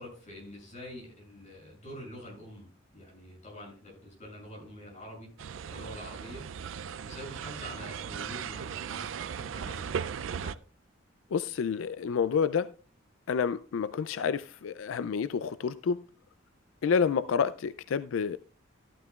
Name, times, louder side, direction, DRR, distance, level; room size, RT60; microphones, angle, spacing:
voice 1, 0.0-5.3 5.7-6.4 7.0-10.6, equal, 40° left, 7.1 m, -46 dB
sound 1, 5.4-10.6, right 7 dB, 75° right, 0.4 m, -37 dB
voice 2, 11.3-12.7 13.3-16.0 16.8-18.4, left 6 dB, 85° left, 0.4 m, -29 dB
13.5 x 12.5 x 2.3 m
head